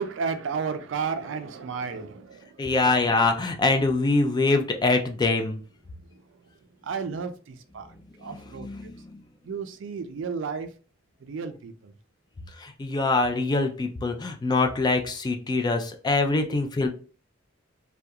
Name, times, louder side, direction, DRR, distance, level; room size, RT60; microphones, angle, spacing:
voice 1, 0.0-3.5 6.8-7.9 8.2-8.7 9.5-10.7 11.2-11.9, right 5 dB, 70° right, 0.4 m, -33 dB
voice 2, 2.6-5.6 8.6-9.2 12.6-16.9, left 3 dB, 20° left, 0.3 m, -24 dB
2.3 x 2.3 x 2.7 m
head